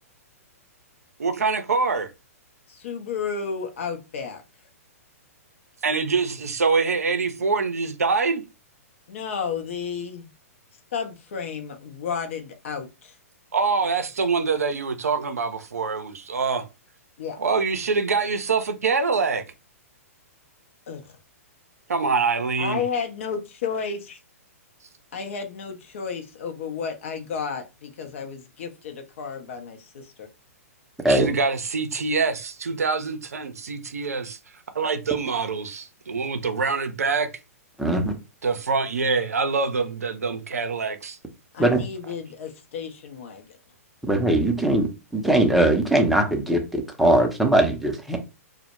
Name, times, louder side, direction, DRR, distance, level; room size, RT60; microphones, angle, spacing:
voice 1, 1.2-2.1 5.8-8.4 13.5-16.6 17.4-19.4 21.9-22.8 31.1-34.4 34.7-37.3 38.4-41.2, right 4 dB, 75° right, 0.4 m, -25 dB
voice 2, 2.7-4.4 9.1-10.3 10.9-13.1 17.2-17.4 20.9-21.1 22.6-24.2 25.1-30.3 41.5-43.5, left 6 dB, 55° left, 0.5 m, -32 dB
voice 3, 37.8-38.1 41.6-41.8 44.0-48.2, right 1 dB, ahead, 0.5 m, -20 dB
2.1 x 2.0 x 2.9 m
figure-of-eight pair, 115°, 8 cm